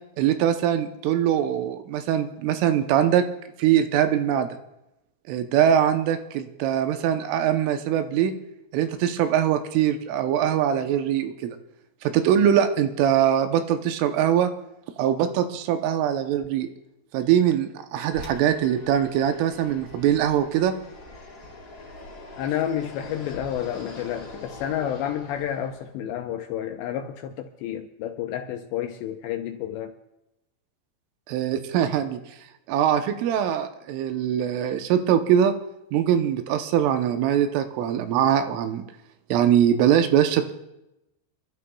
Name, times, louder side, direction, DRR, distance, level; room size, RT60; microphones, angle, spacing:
voice 1, 0.2-3.2 3.6-4.5 5.3-8.3 8.7-11.6 12.0-14.5 15.0-16.7 17.1-20.7 31.3-32.2 32.7-35.5 35.9-38.8 39.3-40.5, right 10 dB, 80° right, 3.3 m, -22 dB
Fixed-wing aircraft airplane, 18.1-25.9, left 2 dB, 45° left, 1.2 m, -43 dB
voice 2, 22.4-30.0, left 10 dB, 80° left, 2.6 m, -30 dB
28.0 x 12.5 x 2.3 m
omnidirectional pair, 5.7 m